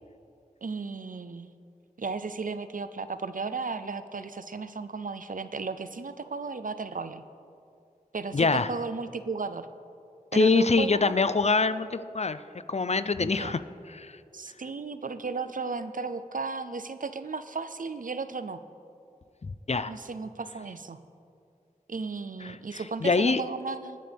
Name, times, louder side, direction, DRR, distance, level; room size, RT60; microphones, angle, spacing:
voice 1, 0.6-1.5 2.0-7.2 8.1-9.7 10.3-11.1 13.2-13.6 14.3-18.6 19.9-21.0 21.9-24.0, right 4 dB, 70° right, 11 dB, 0.5 m, -35 dB
voice 2, 8.3-8.7 10.3-12.4 12.7-13.6 13.9-14.2 19.4-19.9 22.4-23.4, left 4 dB, 50° left, 13 dB, 0.4 m, -25 dB
22.0 x 7.6 x 3.5 m, 2.5 s
wide cardioid pair, 45°, 14 cm